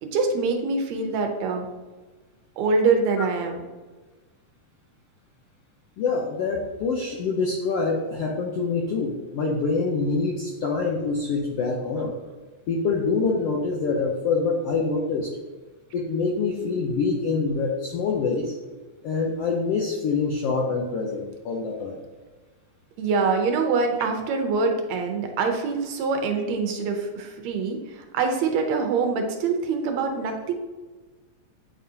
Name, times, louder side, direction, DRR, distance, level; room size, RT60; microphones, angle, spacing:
voice 1, 0.0-1.7 2.6-3.6 23.0-30.5, right 4 dB, 70° right, 4 dB, 1.8 m, -24 dB
voice 2, 6.0-12.2 12.7-15.3 15.9-18.5 19.0-22.0, left 4 dB, 90° left, 0 dB, 1.3 m, -25 dB
8.6 x 4.0 x 2.7 m, 1.3 s
omnidirectional pair, 3.5 m